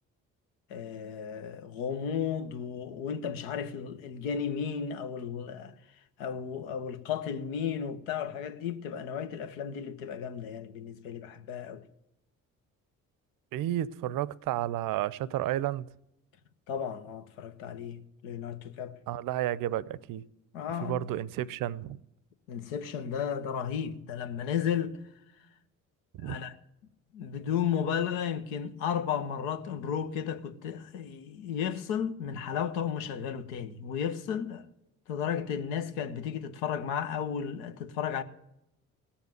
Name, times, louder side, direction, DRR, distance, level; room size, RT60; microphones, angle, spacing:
voice 1, 0.7-5.7 6.2-11.8 16.7-19.0 20.5-21.0 22.5-24.9 26.2-26.6 27.1-34.6 35.1-38.2, left 8 dB, 75° left, 1.0 m, -34 dB
voice 2, 13.5-15.9 19.1-20.2 20.8-22.0 26.2-26.4, right 13 dB, 55° right, 0.6 m, -31 dB
17.5 x 7.2 x 9.3 m
hypercardioid pair, 50°, 41 cm